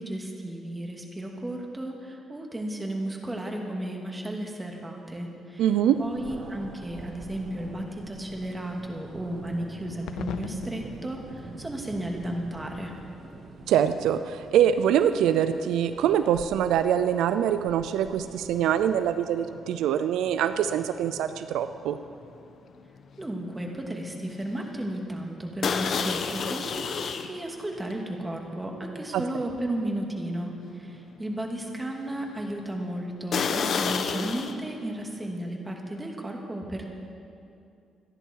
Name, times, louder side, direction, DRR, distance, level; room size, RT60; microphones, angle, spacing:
voice 1, 0.0-5.6 6.0-12.9 23.2-36.9, right 1 dB, 15° right, 1 dB, 2.5 m, -34 dB
voice 2, 5.6-6.0 13.7-22.0 29.1-29.3, right 9 dB, 85° right, 11 dB, 0.5 m, -24 dB
Thunder, 5.8-19.4, right 3 dB, 60° right, 2.1 m, -45 dB
sound 1, 10.1-12.9, left 9 dB, 75° left, 0.6 m, -41 dB
sound 2, 18.4-18.7 19.0-23.6 23.9-24.2 24.6-24.7 25.6-27.3 27.9-28.0 28.6-28.7 29.2-29.3 33.3-34.5, left 6 dB, 55° left, 1.0 m, -30 dB
26.5 x 10.5 x 4.7 m, 2.5 s
cardioid pair, 90°, 0 cm